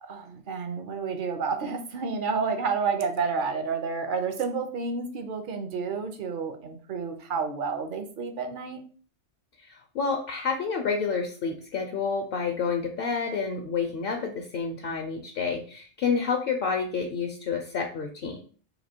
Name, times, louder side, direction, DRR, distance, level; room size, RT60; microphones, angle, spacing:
voice 1, 0.0-8.8, right 5 dB, 55° right, 6 dB, 0.7 m, -30 dB
voice 2, 9.6-18.4, left 5 dB, 60° left, 3 dB, 0.7 m, -29 dB
3.0 x 2.6 x 4.3 m, 0.41 s
omnidirectional pair, 1.2 m